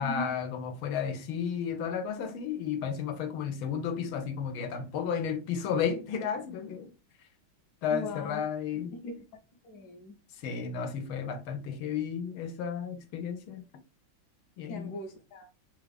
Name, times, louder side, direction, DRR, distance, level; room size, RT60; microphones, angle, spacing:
voice 1, 0.0-6.9 7.8-8.9 10.4-13.6 14.6-15.0, left 7 dB, 85° left, 1.5 m, -33 dB
voice 2, 7.9-8.4 9.0-9.2 9.6-10.2 14.7-15.5, left 2 dB, 65° left, 1.1 m, -39 dB
3.5 x 2.4 x 3.3 m
omnidirectional pair, 2.2 m